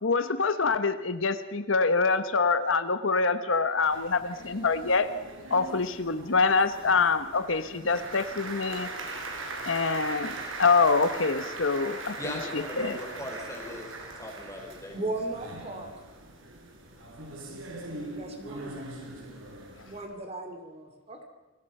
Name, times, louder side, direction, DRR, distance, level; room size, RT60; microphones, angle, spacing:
voice 1, 0.0-5.1 5.5-8.9 9.7-10.3 10.6-12.1 12.8-13.0, left 4 dB, 75° left, 11 dB, 1.1 m, -25 dB
sound 1, 3.8-20.1, right 2 dB, 80° right, 4.6 m, -40 dB
voice 2, 12.2-15.0, left 1 dB, 15° left, 1 dB, 4.8 m, -39 dB
voice 3, 14.9-15.9 18.2-18.9 19.8-21.2, right 2 dB, 30° right, 5 dB, 2.7 m, -36 dB
29.5 x 21.0 x 5.5 m, 1.3 s
head